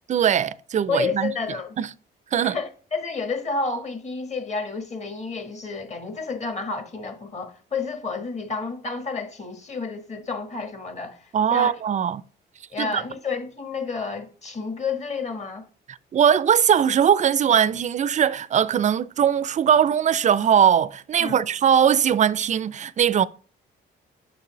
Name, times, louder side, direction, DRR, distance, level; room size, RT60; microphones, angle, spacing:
voice 1, 0.1-1.3 1.8-1.9 2.3-2.6 11.3-12.2 12.8-13.0 15.9-23.3, right 8 dB, 40° right, 0.4 m, -20 dB
voice 2, 0.9-1.7 2.4-11.7 12.7-15.6 21.2-21.5, left 4 dB, 35° left, 1.3 m, -30 dB
6.7 x 5.9 x 3.0 m
cardioid pair, 90°, 20 cm